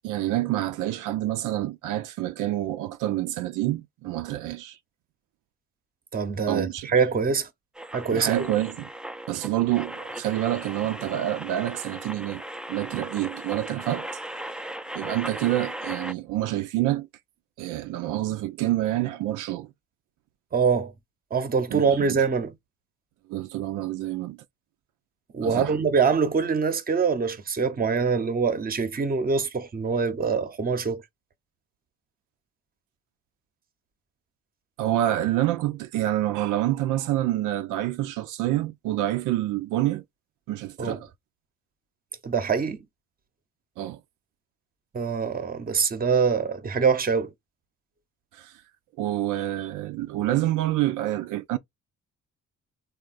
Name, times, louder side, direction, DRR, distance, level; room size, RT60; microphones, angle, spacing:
voice 1, 0.0-4.8 6.5-6.9 8.1-8.9 9.3-12.4 12.7-14.1 14.9-17.1 17.6-19.7 21.7-22.2 23.3-24.4 25.4-25.8 34.8-40.0 40.5-41.1 43.8-44.0 48.3-48.5 49.0-51.6, right 14 dB, 90° right, 0.5 m, -27 dB
voice 2, 6.1-7.5 7.9-8.5 20.5-20.9 21.3-22.5 25.3-31.0 40.8-41.0 42.2-42.8 44.9-47.3, right 5 dB, 30° right, 0.8 m, -24 dB
sound 1, 7.8-16.1, right 1 dB, 5° right, 0.4 m, -37 dB
3.5 x 2.3 x 2.4 m
cardioid pair, 90°, 30 cm